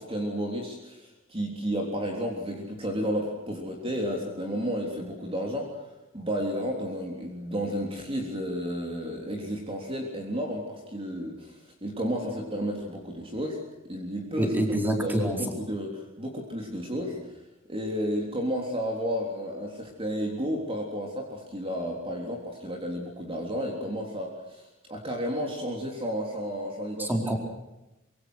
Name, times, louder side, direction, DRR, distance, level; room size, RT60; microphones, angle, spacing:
voice 1, 0.0-5.7 6.1-13.6 13.9-14.5 15.0-17.2 17.7-27.1, equal, 25° right, 1 dB, 3.6 m, -32 dB
voice 2, 14.4-15.4 27.0-27.4, right 1 dB, 10° right, 2 dB, 4.6 m, -26 dB
25.5 x 24.0 x 6.4 m, 0.98 s
head